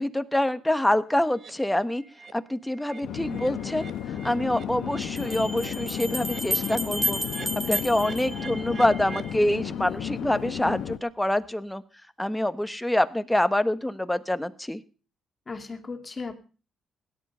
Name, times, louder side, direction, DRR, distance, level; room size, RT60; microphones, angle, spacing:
voice 1, 0.0-2.0 2.3-3.9 4.2-7.2 7.7-11.8 12.2-14.8, left 1 dB, 5° left, 11 dB, 1.2 m, -26 dB
sound 1, 1.4-1.5 2.0-2.3 2.6-9.3, right 5 dB, 50° right, 1.0 m, -44 dB
Conversation / Chatter / Fixed-wing aircraft airplane, 3.0-11.0, left 9 dB, 80° left, 1.0 m, -33 dB
sound 2, 5.2-9.1, equal, 10° right, 3.2 m, -32 dB
voice 2, 6.8-7.1 15.5-16.3, left 4 dB, 30° left, 5 dB, 2.7 m, -36 dB
17.0 x 11.5 x 5.5 m, 0.38 s
cardioid pair, 90°, 0 cm